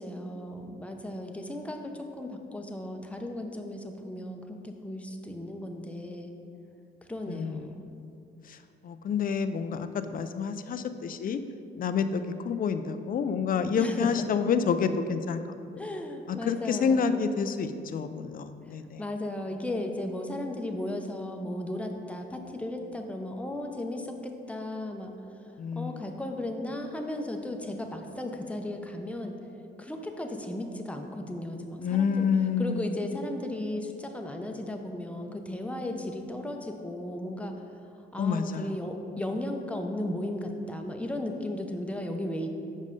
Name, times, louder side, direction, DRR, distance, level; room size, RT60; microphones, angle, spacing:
voice 1, 0.0-6.3 7.1-7.8 13.8-14.2 15.8-17.3 18.6-29.3 29.8-32.3 32.6-37.5 38.1-42.6, left 1 dB, 5° left, 3 dB, 0.7 m, -35 dB
voice 2, 7.3-8.1 8.5-8.6 8.8-11.4 11.8-15.4 16.3-19.0 25.6-26.1 31.8-32.9 38.2-38.7, left 6 dB, 45° left, 10 dB, 0.5 m, -29 dB
6.3 x 5.4 x 5.3 m, 2.6 s
cardioid pair, 90°, 20 cm